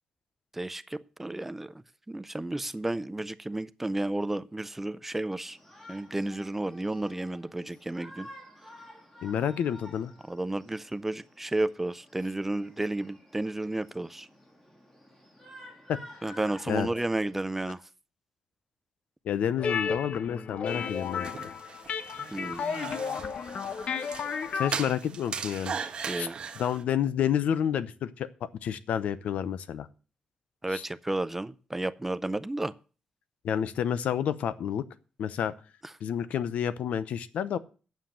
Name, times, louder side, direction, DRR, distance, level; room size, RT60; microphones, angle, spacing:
voice 1, 0.5-1.7 2.1-5.6 5.9-8.3 10.3-14.3 16.2-17.8 22.3-22.6 26.1-26.4 30.6-32.7, right 2 dB, 10° right, 0.4 m, -32 dB
Shout, 5.5-17.6, equal, 15° left, 3.0 m, -51 dB
voice 2, 9.2-10.1 15.9-16.3 16.7-16.9 19.2-21.3 24.5-25.7 26.1-26.3 26.6-28.3 28.6-29.9 30.7-30.8 33.4-34.8 35.2-35.5 36.0-37.6, left 9 dB, 90° left, 0.8 m, -29 dB
sound 1, 19.6-24.7, left 6 dB, 55° left, 0.8 m, -33 dB
sound 2, 20.7-26.8, right 6 dB, 45° right, 1.2 m, -39 dB
9.0 x 7.5 x 7.5 m
wide cardioid pair, 155°, 2 cm